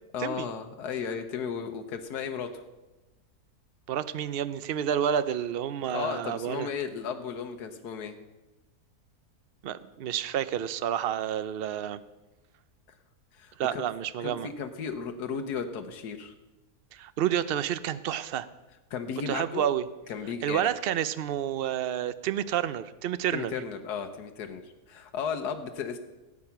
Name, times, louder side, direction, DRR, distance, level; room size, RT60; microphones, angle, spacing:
voice 1, 0.1-2.6 5.9-8.1 13.3-13.8 14.2-16.3 18.9-19.6 20.1-20.7 23.3-26.0, left 6 dB, 80° left, 5 dB, 1.5 m, -35 dB
voice 2, 3.9-6.7 9.6-12.0 13.6-14.5 16.9-18.5 19.3-19.8 20.4-23.5, right 10 dB, 70° right, 14 dB, 0.5 m, -29 dB
18.0 x 8.6 x 5.9 m, 1.1 s
omnidirectional pair, 1.7 m